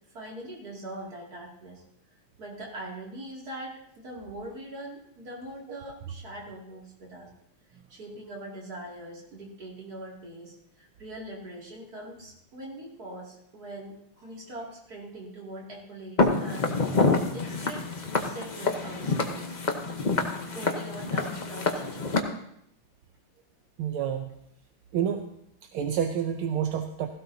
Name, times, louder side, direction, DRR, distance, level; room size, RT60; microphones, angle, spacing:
voice 1, 0.1-1.8 2.1-7.3 7.9-16.8 17.3-17.9 18.2-19.6 20.5-22.3, right 1 dB, 45° right, -3 dB, 3.1 m, -42 dB
Walk footsteps, 16.2-22.2, left 3 dB, 45° left, 0.5 m, -27 dB
voice 2, 23.8-24.3 24.9-25.3 25.7-27.1, right 8 dB, 80° right, 5 dB, 1.6 m, -28 dB
16.0 x 16.0 x 2.8 m, 0.74 s
omnidirectional pair, 2.4 m